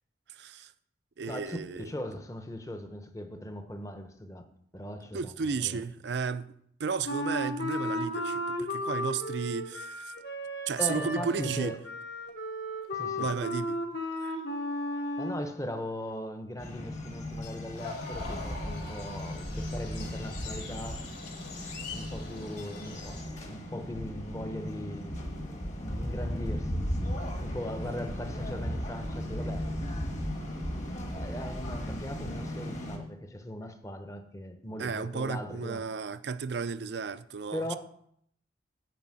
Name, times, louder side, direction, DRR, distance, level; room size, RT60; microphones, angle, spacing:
voice 1, 0.3-0.7 1.2-1.9 5.1-10.1 10.7-11.8 13.2-13.8 14.2-14.4 34.8-37.8, right 5 dB, 65° right, 0.5 m, -33 dB
voice 2, 1.3-4.5 4.7-5.8 10.8-11.8 12.9-13.3 15.2-21.1 21.9-25.2 25.8-26.9 27.4-29.7 31.1-35.8 37.5-37.8, left 1 dB, 15° left, 0.8 m, -39 dB
Wind instrument woodwind instrument, 7.0-15.5, equal, 60° left, 1.5 m, -34 dB
sound 1, 16.6-33.0, equal, 40° left, 1.5 m, -36 dB
sound 2, 17.8-23.2, left 2 dB, 80° left, 3.6 m, -43 dB
9.3 x 4.9 x 7.5 m
head